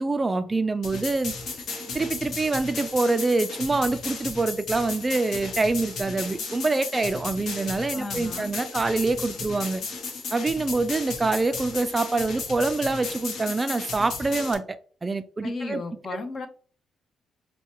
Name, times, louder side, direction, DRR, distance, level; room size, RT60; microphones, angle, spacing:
voice 1, 0.0-1.3 1.9-9.8 10.3-15.8, right 3 dB, 25° right, 0.3 m, -25 dB
sound 1, 0.8-14.5, left 4 dB, 70° left, 1.0 m, -35 dB
voice 2, 7.9-8.5 15.4-16.5, left 3 dB, 45° left, 0.8 m, -34 dB
5.5 x 2.2 x 2.9 m
cardioid pair, 90°, 0 cm